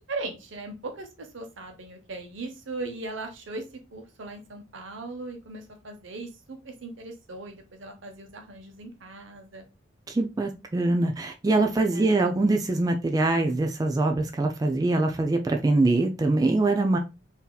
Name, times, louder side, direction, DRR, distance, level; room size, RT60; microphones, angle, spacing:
voice 1, 0.0-3.6 3.9-9.7 11.9-12.3, right 2 dB, 85° right, 0.9 m, -38 dB
voice 2, 10.1-17.0, right 2 dB, 20° right, 0.3 m, -23 dB
3.9 x 2.7 x 2.2 m
head